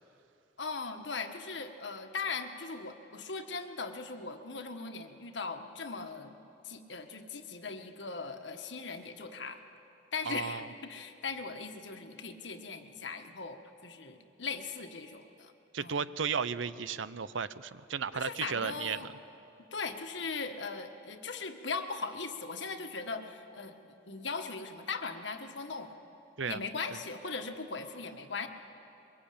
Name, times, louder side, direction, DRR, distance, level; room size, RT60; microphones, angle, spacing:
voice 1, 0.6-6.4 6.6-9.6 10.1-15.5 15.8-16.0 18.1-19.1 19.7-25.9 26.5-28.5, left 4 dB, 70° left, 6 dB, 1.5 m, -39 dB
voice 2, 10.3-10.7 15.7-19.0 26.4-26.6 26.9-27.0, right 6 dB, 85° right, 15 dB, 0.7 m, -34 dB
22.5 x 21.5 x 8.6 m, 2.8 s
head